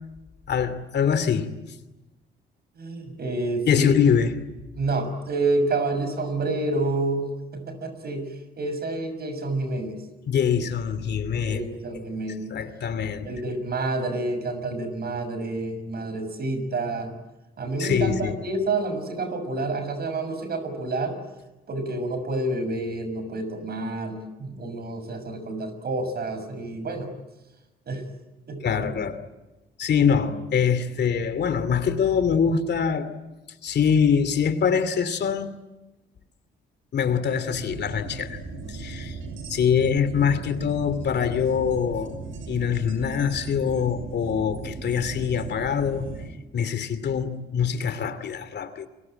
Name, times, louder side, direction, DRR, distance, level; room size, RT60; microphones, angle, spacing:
voice 1, 0.5-1.5 3.7-4.4 10.3-11.6 12.5-13.3 17.8-18.4 28.6-29.2 29.8-33.1 33.6-35.5 36.9-38.4 38.7-39.2 39.5-42.2 42.5-46.1 46.5-48.9, left 7 dB, 60° left, 2.6 m, -24 dB
voice 2, 2.8-3.9 4.8-8.3 8.6-10.0 10.5-10.6 11.4-12.6 13.2-17.1 17.6-21.2 21.7-27.1 27.9-28.0 28.5-28.6, right 2 dB, 50° right, 6.7 m, -28 dB
sound 1, 37.5-46.3, right 3 dB, 80° right, 6.3 m, -37 dB
29.5 x 22.5 x 9.0 m
cardioid pair, 90°, 20 cm